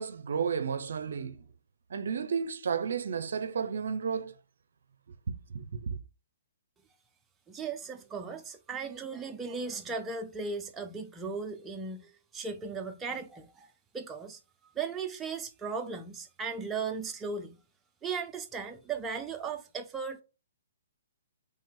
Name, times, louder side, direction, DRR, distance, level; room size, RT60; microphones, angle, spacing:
voice 1, 0.0-1.4 1.9-4.3 5.5-6.0, right 6 dB, 70° right, 0.5 m, -32 dB
voice 2, 7.5-13.7 13.9-14.4 14.8-17.6 18.0-20.2, right 5 dB, 15° right, 0.4 m, -37 dB
3.1 x 2.9 x 3.6 m
hypercardioid pair, 145°, 0 cm